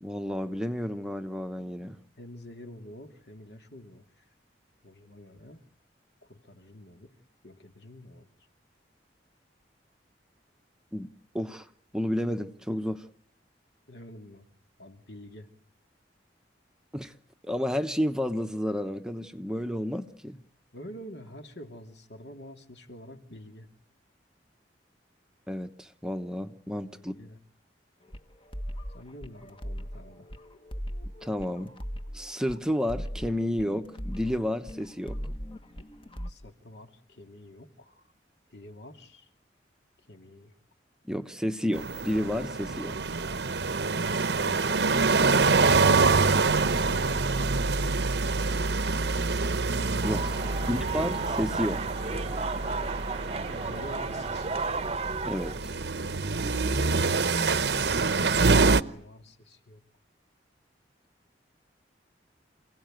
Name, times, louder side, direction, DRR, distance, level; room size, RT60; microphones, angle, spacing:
voice 1, 0.0-2.0 10.9-11.1 11.3-11.7 11.9-13.1 16.9-17.1 17.4-20.4 25.5-27.1 31.2-31.7 32.1-35.2 41.0-43.0 50.0-50.4 50.7-51.8 55.2-55.8, equal, 5° right, 1.0 m, -31 dB
voice 2, 2.2-4.3 4.8-5.6 6.2-7.1 7.4-8.3 13.9-14.5 14.8-15.5 20.7-23.7 26.9-27.4 28.9-30.3 36.3-38.1 38.5-39.3 40.0-40.5 44.4-45.2 46.6-47.8 48.3-48.6 53.5-54.7 58.8-59.8, left 1 dB, 65° left, 2.9 m, -47 dB
sound 1, 28.0-36.3, equal, 30° left, 1.4 m, -39 dB
sound 2, 41.7-58.8, right 4 dB, 65° right, 0.9 m, -26 dB
sound 3, 50.0-55.6, right 4 dB, 35° right, 1.0 m, -33 dB
28.5 x 17.5 x 9.1 m
head